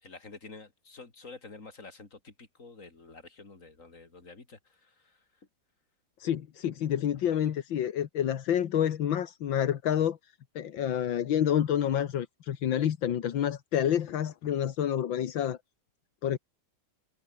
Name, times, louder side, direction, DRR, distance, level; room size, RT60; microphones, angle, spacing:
voice 1, 0.0-5.2, left 3 dB, 40° left, 3.9 m, -49 dB
voice 2, 6.2-10.2 10.6-15.6 16.2-16.4, left 10 dB, 80° left, 2.0 m, -28 dB
omnidirectional pair, 2.1 m